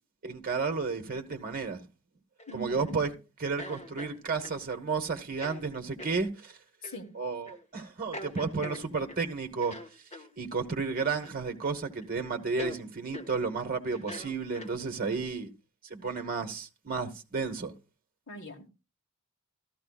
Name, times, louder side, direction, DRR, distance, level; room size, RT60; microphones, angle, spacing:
voice 1, 0.2-1.8 2.5-3.1 3.4-6.5 7.1-9.7 10.4-15.5 15.9-17.7, right 4 dB, 40° right, 1.1 m, -32 dB
sound 1, 2.4-3.0 3.6-4.6 5.3-5.6 6.0-6.2 6.8-7.0 7.5-7.6 8.1-9.2 9.6-10.3 11.2-11.7 12.0-12.1 12.6-12.8 13.1-13.3 13.9-15.0, left 1 dB, 30° left, 1.2 m, -43 dB
voice 2, 2.5-3.0 6.8-7.1 18.3-18.7, right 1 dB, 60° left, 1.6 m, -41 dB
14.0 x 13.5 x 2.3 m
head